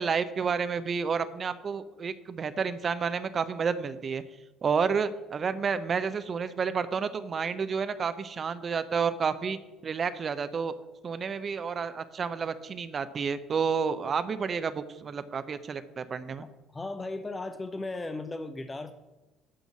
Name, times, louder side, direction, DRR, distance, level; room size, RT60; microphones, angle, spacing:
voice 1, 0.0-4.2 4.6-10.7 11.0-16.4, right 6 dB, 40° right, 12 dB, 0.6 m, -30 dB
voice 2, 16.4-18.9, left 2 dB, 20° left, 9 dB, 0.7 m, -36 dB
11.0 x 3.9 x 7.2 m, 1.1 s
hypercardioid pair, 60°, 0 cm